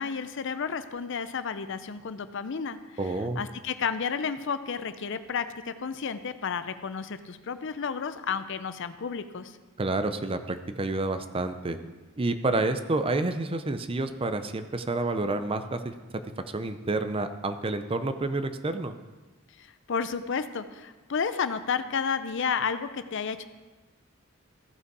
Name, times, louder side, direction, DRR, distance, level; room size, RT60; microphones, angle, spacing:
voice 1, 0.0-9.6 19.6-23.4, left 6 dB, 60° left, 12 dB, 0.5 m, -32 dB
voice 2, 3.0-3.4 9.8-11.8 12.2-15.9 16.5-18.9, right 2 dB, 25° right, 10 dB, 0.5 m, -29 dB
15.5 x 5.5 x 4.7 m, 1.3 s
head